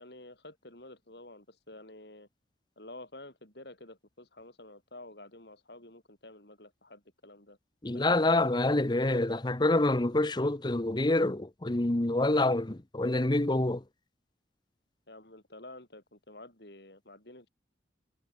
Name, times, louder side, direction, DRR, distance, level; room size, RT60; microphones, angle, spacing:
voice 1, 0.0-2.3 2.8-7.6 15.1-17.5, left 2 dB, 65° left, 7.9 m, -50 dB
voice 2, 7.8-13.8, left 2 dB, 25° left, 0.9 m, -27 dB
head